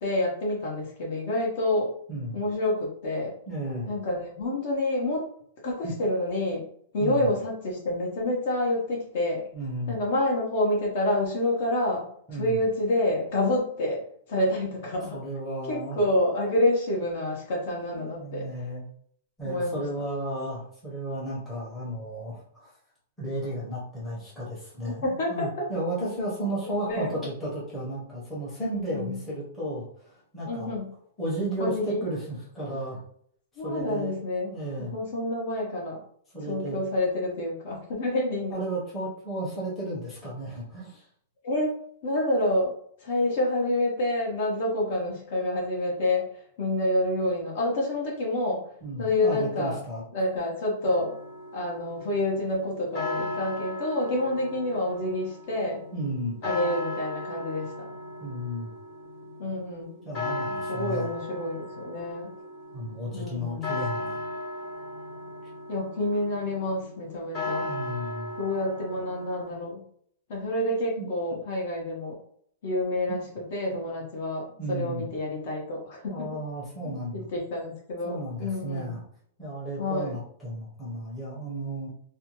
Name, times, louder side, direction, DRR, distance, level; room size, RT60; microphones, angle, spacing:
voice 1, 0.0-1.9 2.3-3.3 3.9-5.3 5.6-6.6 6.9-9.4 9.9-12.0 12.3-15.2 15.7-18.5 19.4-19.8 24.8-25.7 26.8-27.3 28.7-29.2 30.5-30.9 31.6-32.0 32.7-32.8 33.6-34.5 34.9-36.0 36.5-38.6 41.4-41.7 42.0-42.7 43.0-46.3 46.6-48.6 49.0-49.8 50.1-51.1 51.5-55.8 56.4-57.9 59.4-60.0 60.7-62.3 63.1-63.7 65.7-67.7 68.4-69.8 70.3-72.2 72.6-73.2 73.5-76.4 76.8-79.0 79.8-80.2, left 1 dB, 40° left, -1 dB, 0.7 m, -28 dB
voice 2, 3.5-3.9 5.8-5.9 7.0-7.3 9.5-10.0 12.3-12.6 15.1-16.0 17.9-18.8 19.4-22.7 23.2-30.8 31.2-33.0 33.6-35.0 36.3-36.8 38.5-41.1 48.8-50.0 55.9-56.4 58.2-58.7 60.0-61.1 62.7-64.2 67.6-68.3 71.0-71.1 74.6-75.1 76.1-77.3 78.0-79.0 79.4-81.9, right 1 dB, 5° left, -8 dB, 0.8 m, -33 dB
sound 1, 50.8-69.5, left 2 dB, 25° left, 1.1 m, -37 dB
2.6 x 2.2 x 2.9 m, 0.63 s
supercardioid pair, 180°, 0 cm